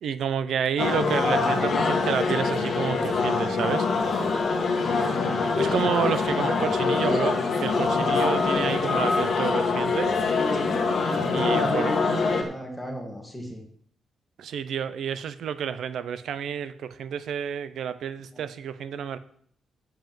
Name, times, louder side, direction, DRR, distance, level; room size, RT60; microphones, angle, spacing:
voice 1, 0.0-3.9 5.6-10.1 11.3-11.9 14.4-19.2, right 8 dB, 60° right, 13 dB, 0.8 m, -30 dB
sound 1, 0.8-12.4, left 4 dB, 40° left, 1.7 m, -24 dB
voice 2, 5.2-5.6 10.3-10.8 11.1-13.6 18.3-18.4, left 1 dB, 5° left, 1 dB, 2.0 m, -34 dB
7.8 x 7.5 x 7.6 m, 0.62 s
wide cardioid pair, 180°, 0 cm